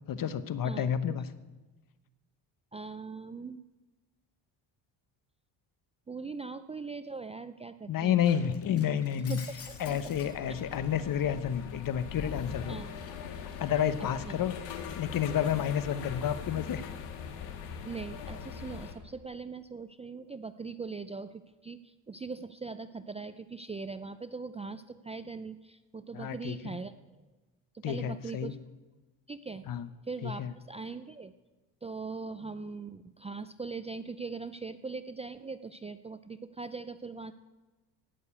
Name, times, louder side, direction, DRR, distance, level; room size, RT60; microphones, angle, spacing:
voice 1, 0.1-1.3 7.9-9.4 9.8-12.8 13.6-14.6 15.0-16.8 26.1-26.8 27.8-28.5 29.7-29.9 30.2-30.5, left 9 dB, 50° left, 14 dB, 1.0 m, -30 dB
voice 2, 0.6-1.2 2.7-3.6 6.1-8.2 9.2-10.0 12.7-12.9 14.0-14.3 17.8-26.9 27.7-28.6 29.3-29.7 30.0-31.3 31.8-37.3, right 4 dB, 15° right, 11 dB, 0.4 m, -41 dB
Shatter, 8.2-11.1 11.5-14.7, left 5 dB, 35° left, 1.9 m, -52 dB
sound 1, 9.6-18.9, left 7 dB, 90° left, 1.8 m, -41 dB
16.5 x 6.7 x 8.4 m, 1.2 s
cardioid pair, 110°, 42 cm